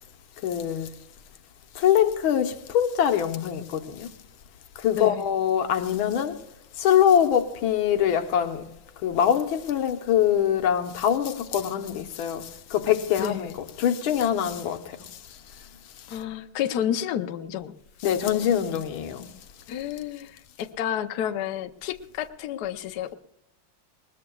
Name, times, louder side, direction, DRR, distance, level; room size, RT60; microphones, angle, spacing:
voice 1, 0.4-0.9 1.8-4.1 4.8-6.4 6.8-8.6 9.0-13.5 13.8-15.0 18.0-19.3, left 9 dB, 80° left, 1.8 m, -23 dB
voice 2, 13.2-13.5 16.1-17.7 19.7-23.1, left 10 dB, 65° left, 1.1 m, -30 dB
20.5 x 20.0 x 2.3 m
omnidirectional pair, 2.2 m